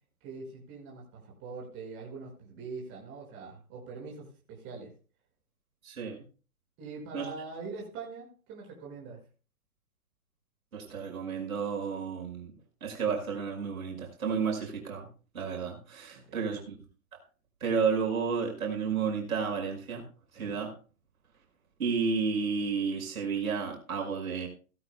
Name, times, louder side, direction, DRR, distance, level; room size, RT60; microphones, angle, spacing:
voice 1, 0.2-4.9 6.8-9.2 16.1-16.6, right 4 dB, 25° right, -1 dB, 5.9 m, -43 dB
voice 2, 5.8-6.2 7.1-7.3 10.7-12.5 12.8-15.1 15.3-16.7 17.1-17.2 17.6-20.0 20.3-20.7 21.8-24.5, right 5 dB, 70° right, 1 dB, 5.7 m, -31 dB
17.0 x 14.0 x 2.3 m, 0.36 s
hypercardioid pair, 145°, 43 cm